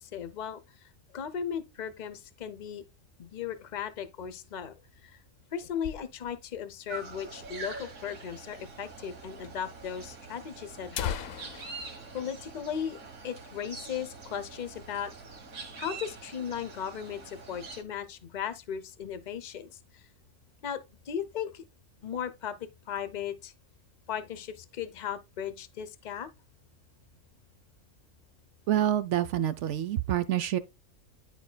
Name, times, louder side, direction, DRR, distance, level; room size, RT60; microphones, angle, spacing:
voice 1, 0.0-2.8 3.2-4.7 5.0-5.2 5.5-11.2 11.6-11.7 12.1-13.0 13.2-15.1 15.8-20.0 20.6-20.8 21.1-21.6 22.0-23.5 24.1-26.3, left 8 dB, 40° left, 0.7 m, -37 dB
sound 1, 4.8-6.6 6.9-7.0 7.2-7.3 8.0-8.1 9.0-9.1 9.4-9.5 10.3-10.4 10.7-13.3 13.6-13.8 14.2-14.4 14.9-15.4, left 10 dB, 85° left, 1.1 m, -40 dB
sound 2, 6.9-17.8, right 4 dB, 85° right, 1.9 m, -45 dB
voice 2, 28.7-30.6, right 12 dB, 70° right, 0.9 m, -27 dB
11.0 x 4.5 x 2.2 m
omnidirectional pair, 1.4 m